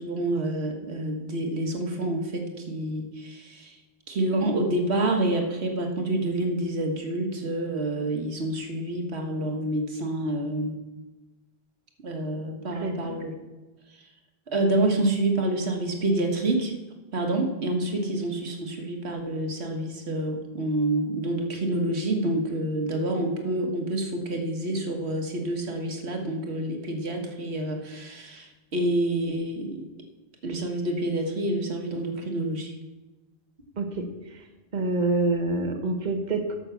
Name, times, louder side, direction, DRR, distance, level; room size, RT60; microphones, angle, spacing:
voice 1, 0.0-3.8 4.1-10.7 12.0-13.3 14.5-16.7 17.1-29.8 30.4-32.7, right 1 dB, 90° right, 3 dB, 1.7 m, -28 dB
voice 2, 12.8-13.1 33.8-34.4 34.7-36.5, right 2 dB, 45° right, 4 dB, 1.3 m, -27 dB
12.5 x 5.9 x 6.9 m, 1.1 s
omnidirectional pair, 1.1 m